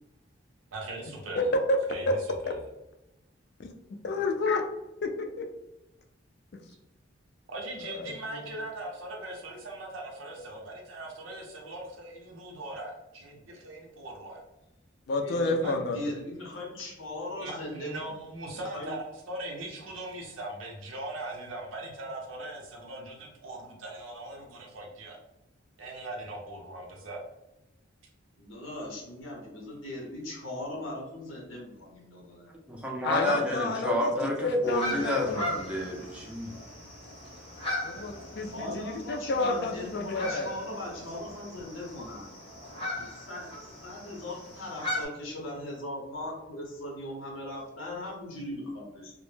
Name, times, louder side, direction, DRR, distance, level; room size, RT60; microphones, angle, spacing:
voice 1, 0.7-1.6 1.9-2.1 2.4-2.6 7.5-14.4 15.6-15.7 17.4-25.2 25.8-27.2, right 2 dB, 90° right, -1 dB, 0.6 m, -40 dB
voice 2, 1.4-1.8 2.1-2.2 2.5-2.6 3.6-3.7 4.0-4.6 5.0-5.5 7.9-8.5 15.1-16.0 33.0-35.7 37.8-40.5, left 2 dB, 55° left, 4 dB, 0.3 m, -29 dB
voice 3, 15.2-18.3 18.5-18.9 28.4-32.5 37.9-38.1 38.5-42.3 43.0-43.5 43.8-49.1, left 1 dB, 85° left, -2 dB, 0.8 m, -39 dB
voice 4, 32.7-36.5, equal, 5° right, -2 dB, 0.4 m, -30 dB
sound 1, 34.6-45.0, left 1 dB, 25° left, 0.7 m, -38 dB
2.1 x 2.0 x 3.1 m, 0.92 s
head